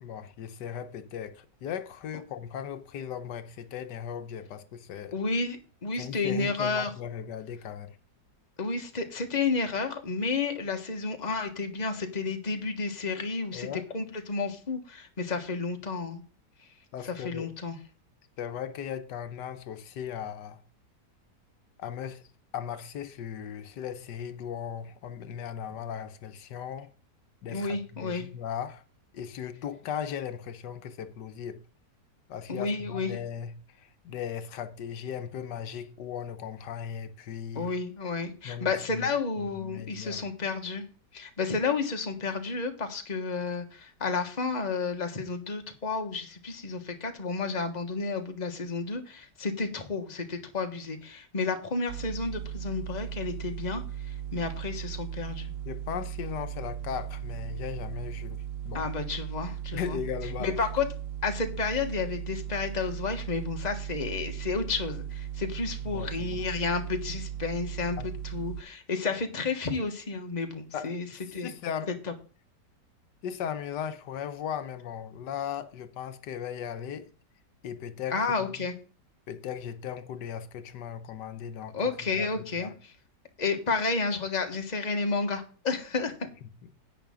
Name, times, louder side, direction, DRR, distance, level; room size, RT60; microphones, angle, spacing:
voice 1, 0.0-5.2 6.0-8.0 13.5-13.9 16.9-17.5 18.4-20.6 21.8-22.3 22.5-26.9 27.4-28.8 29.1-31.6 32.3-37.7 38.4-39.1 39.4-40.3 55.6-58.9 59.7-60.6 65.8-66.5 68.0-68.1 70.7-70.9 71.4-71.9 73.2-77.1 77.6-78.7 79.3-82.7 86.6-86.7, left 8 dB, 85° left, 1.5 m, -37 dB
voice 2, 5.1-6.9 8.6-13.7 13.9-16.2 17.0-17.8 27.5-28.3 32.5-33.1 37.5-40.8 41.1-55.5 58.7-60.0 60.4-60.9 61.2-71.1 71.3-71.5 78.1-78.7 81.7-82.9 83.4-86.3, left 4 dB, 25° left, 1.4 m, -31 dB
sound 1, 51.9-68.6, right 10 dB, 70° right, 0.5 m, -37 dB
10.5 x 8.5 x 3.7 m
omnidirectional pair, 1.8 m